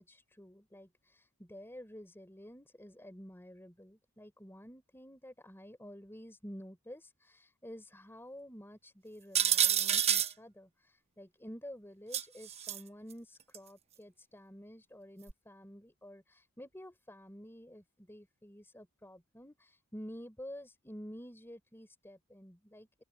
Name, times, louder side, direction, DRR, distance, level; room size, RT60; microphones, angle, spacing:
voice 1, 0.0-23.0, equal, 10° left, 3.6 m, -50 dB
sound 1, 9.3-10.3 12.1-12.8 13.5-13.6 15.3-15.4, right 9 dB, 30° right, 0.8 m, -28 dB
open air
head